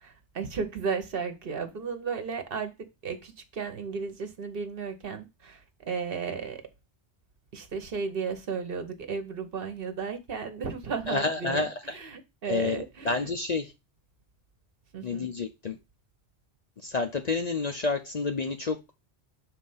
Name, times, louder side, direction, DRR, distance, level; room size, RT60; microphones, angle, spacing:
voice 1, 0.0-2.7 3.0-6.6 7.5-13.3 14.9-15.3, right 5 dB, 55° right, 1.1 m, -34 dB
voice 2, 11.1-11.7 12.5-13.7 15.0-15.8 16.8-18.8, left 3 dB, 45° left, 0.6 m, -29 dB
6.3 x 3.2 x 5.5 m
omnidirectional pair, 1.2 m